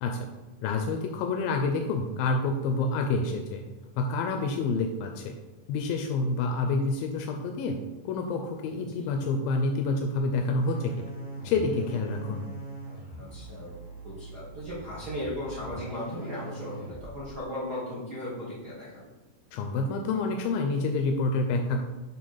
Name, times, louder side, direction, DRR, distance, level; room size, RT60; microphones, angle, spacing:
voice 1, 0.6-3.6 4.0-5.3 5.7-11.1 11.4-12.5 19.5-21.8, left 3 dB, 90° left, 3 dB, 2.3 m, -28 dB
voice 2, 8.7-9.1 13.2-13.8 14.0-19.1, left 1 dB, 75° right, -9 dB, 0.9 m, -37 dB
sound 1, 10.6-17.4, right 2 dB, 55° right, 0.5 m, -42 dB
6.8 x 3.1 x 5.5 m, 1.2 s
omnidirectional pair, 4.0 m